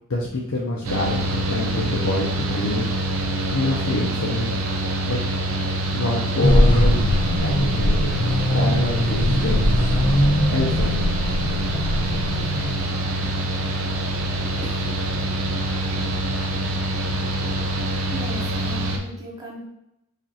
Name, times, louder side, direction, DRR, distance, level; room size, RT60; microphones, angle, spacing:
voice 1, 0.1-2.9 3.5-4.6 5.0-5.2 5.9-7.1 7.4-8.1 8.5-9.9 10.5-10.9, left 2 dB, 90° left, -4 dB, 0.6 m, -26 dB
Mechanical fan, 0.8-19.0, right 1 dB, 80° right, 0.6 m, -25 dB
sound 1, 6.4-12.9, equal, 20° left, 0.4 m, -21 dB
voice 2, 18.1-19.7, equal, 15° right, -5 dB, 0.9 m, -37 dB
5.0 x 2.5 x 2.8 m, 0.85 s
head